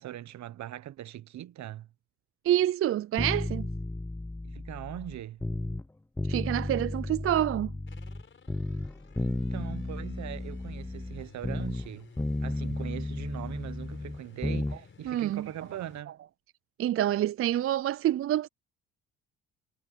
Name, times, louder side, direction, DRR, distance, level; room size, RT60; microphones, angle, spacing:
voice 1, 0.0-1.9 4.4-5.4 9.2-12.1 12.4-16.2, right 12 dB, 65° right, 0.9 m, -41 dB
voice 2, 2.4-3.7 6.3-7.7 15.1-15.5 16.8-18.5, right 12 dB, 50° right, 0.4 m, -27 dB
sound 1, 3.2-5.9 6.2-8.2 8.5-11.9 12.2-14.8 15.1-15.2, left 2 dB, 10° left, 0.5 m, -33 dB
sound 2, 7.9-16.0, left 5 dB, 40° left, 4.8 m, -55 dB
cardioid pair, 90°, 30 cm